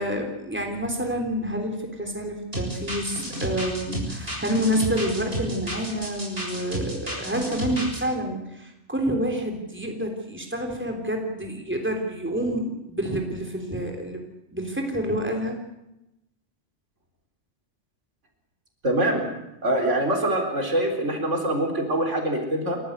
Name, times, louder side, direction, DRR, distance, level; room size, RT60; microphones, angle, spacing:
voice 1, 0.0-14.2 14.5-15.6, equal, 10° right, 2 dB, 3.5 m, -28 dB
sound 1, 2.5-8.0, right 1 dB, 50° right, 7.4 m, -31 dB
voice 2, 18.8-19.3 19.6-22.8, right 1 dB, 80° right, 2 dB, 4.5 m, -24 dB
29.0 x 14.0 x 8.2 m, 0.91 s
omnidirectional pair, 1.2 m